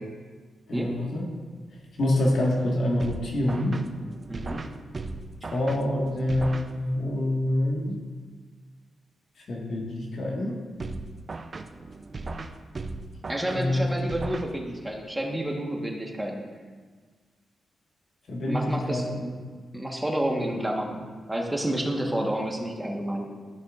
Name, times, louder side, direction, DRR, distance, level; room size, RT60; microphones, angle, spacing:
voice 1, 0.7-1.2 2.0-3.8 5.5-8.0 9.5-10.6 13.5-13.9 18.3-19.3, left 1 dB, 65° left, -1 dB, 1.7 m, -26 dB
sound 1, 3.0-7.2 10.8-15.0, right 3 dB, 45° right, 0.5 m, -38 dB
voice 2, 4.3-4.6 13.3-16.4 18.5-19.1 19.7-20.9 21.3-23.3, right 1 dB, 10° right, 0 dB, 1.4 m, -29 dB
14.0 x 5.6 x 2.5 m, 1.5 s
cardioid pair, 60°, 0 cm